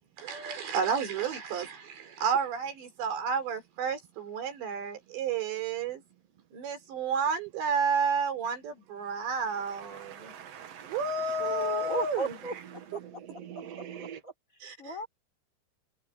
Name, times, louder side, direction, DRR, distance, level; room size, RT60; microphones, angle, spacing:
voice 1, 0.2-6.0 6.5-10.3 10.8-12.4 14.6-14.9, right 5 dB, 75° right, 6.3 m, -31 dB
voice 2, 9.6-11.7 13.3-14.2, right 9 dB, 60° right, 1.7 m, -45 dB
voice 3, 11.4-12.5 12.9-13.0 14.0-14.3 14.8-15.1, right 1 dB, 15° left, 6.0 m, -34 dB
omnidirectional pair, 5.1 m